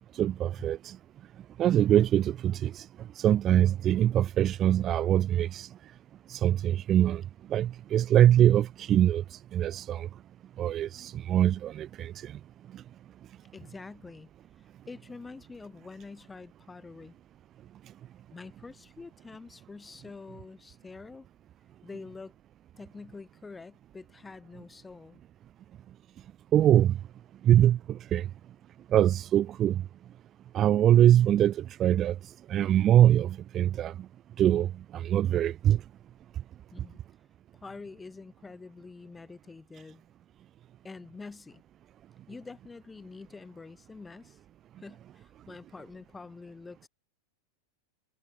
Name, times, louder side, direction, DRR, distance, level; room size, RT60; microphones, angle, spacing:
voice 1, 0.2-1.0 1.6-2.9 3.2-5.7 6.3-7.2 7.5-10.1 10.6-12.3 26.5-27.0 27.4-28.3 28.9-29.8 30.5-32.2 32.5-33.9 34.4-35.8, right 11 dB, 30° right, 0.4 m, -23 dB
voice 2, 13.5-14.3 14.6-17.2 18.3-21.3 21.8-22.3 22.8-25.2 36.7-37.0 37.5-40.0 40.8-41.6 42.3-44.4 44.8-46.9, left 4 dB, 10° left, 1.7 m, -46 dB
figure-of-eight pair, 90°, 0 cm